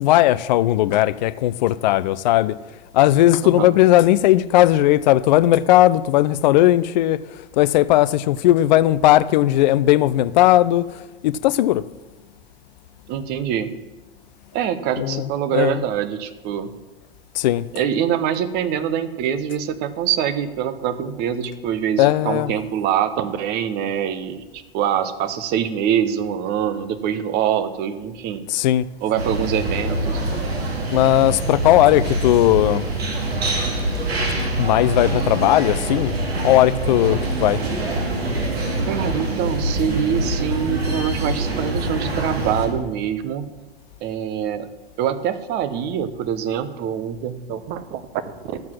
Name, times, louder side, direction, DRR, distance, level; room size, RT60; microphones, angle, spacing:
voice 1, 0.0-2.6 2.9-11.8 15.0-15.8 17.3-17.6 22.0-22.5 28.5-28.9 30.3-30.4 30.9-32.9 34.6-36.1 36.4-37.6, left 14 dB, 45° left, 0.5 m, -17 dB
voice 2, 13.1-13.7 14.5-16.7 17.7-28.4 29.0-30.5 38.8-43.5 44.0-44.7 45.0-48.6, right 9 dB, 30° right, 0.8 m, -24 dB
sound 1, 29.2-42.7, right 2 dB, 70° right, 2.4 m, -24 dB
12.0 x 7.5 x 6.0 m
figure-of-eight pair, 95°, 31 cm